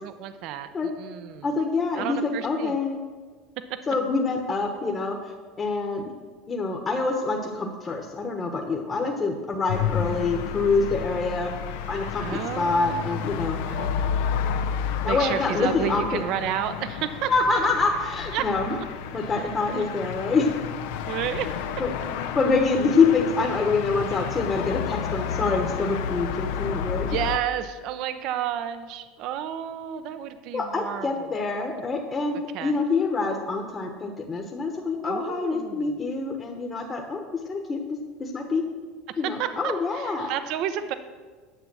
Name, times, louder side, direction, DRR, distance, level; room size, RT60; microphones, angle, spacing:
voice 1, 0.0-0.7 1.0-1.5 1.9-2.8 12.2-13.9 15.0-17.3 17.6-17.7 18.3-18.4 19.7-19.9 21.1-21.6 27.0-31.4 32.5-32.9 35.0-36.0 39.4-40.9, right 10 dB, 60° right, 10 dB, 0.7 m, -31 dB
voice 2, 1.4-3.0 3.9-5.2 5.6-6.1 6.5-11.5 11.9-13.6 15.0-16.2 17.3-18.8 19.1-20.5 21.8-21.9 22.3-27.1 30.5-37.8 38.2-38.6 39.2-40.3, left 4 dB, 30° left, 1 dB, 1.2 m, -26 dB
sound 1, 9.7-27.4, left 8 dB, 75° left, 0.6 m, -31 dB
10.0 x 7.0 x 6.2 m, 1.4 s
supercardioid pair, 95°, 0 cm